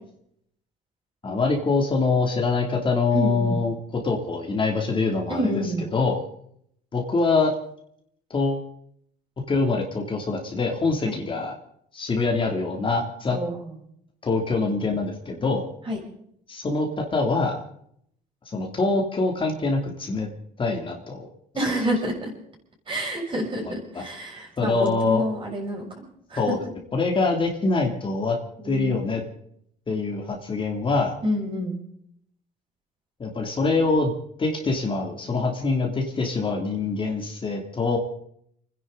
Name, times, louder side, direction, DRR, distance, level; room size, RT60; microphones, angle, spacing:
voice 1, 1.2-3.7 4.0-6.2 6.9-7.5 8.3-8.7 9.5-11.5 11.9-13.4 14.2-15.6 16.5-17.6 18.5-20.3 20.6-21.3 21.7-21.8 23.9-24.0 24.6-25.2 26.4-26.6 26.9-28.4 28.6-29.2 29.9-31.1 33.2-34.1 34.4-38.0, left 3 dB, 30° left, 1 dB, 2.9 m, -24 dB
voice 2, 3.1-3.6 5.3-5.9 11.0-11.2 13.3-13.7 15.9-16.0 21.5-22.3 22.9-26.0 26.3-26.5 28.6-29.0 31.2-31.8, equal, 30° right, -1 dB, 6.5 m, -28 dB
30.0 x 10.5 x 4.0 m, 0.69 s
cardioid pair, 110°, 17 cm